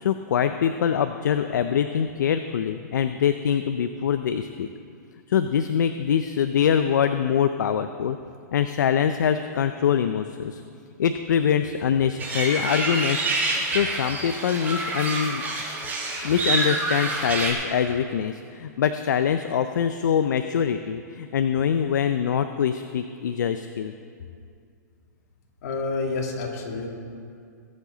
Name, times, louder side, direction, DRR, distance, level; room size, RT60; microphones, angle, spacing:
voice 1, 0.0-4.7 5.3-8.2 8.5-10.6 11.0-13.3 13.7-15.4 16.2-23.9, left 8 dB, 75° left, 9 dB, 0.5 m, -24 dB
sound 1, 12.2-17.5, right 2 dB, 15° right, 2.2 m, -27 dB
voice 2, 25.6-26.9, left 3 dB, 60° left, 1 dB, 2.3 m, -28 dB
21.5 x 7.4 x 3.9 m, 2.4 s
hypercardioid pair, 135°, 10 cm